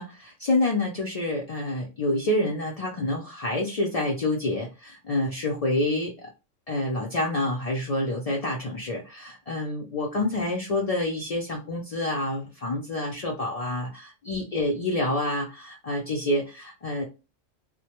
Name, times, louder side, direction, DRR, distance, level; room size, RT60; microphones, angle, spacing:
voice 1, 0.0-6.3 6.7-17.0, left 1 dB, 70° left, -1 dB, 0.3 m, -28 dB
2.1 x 2.1 x 2.8 m, 0.29 s
omnidirectional pair, 1.3 m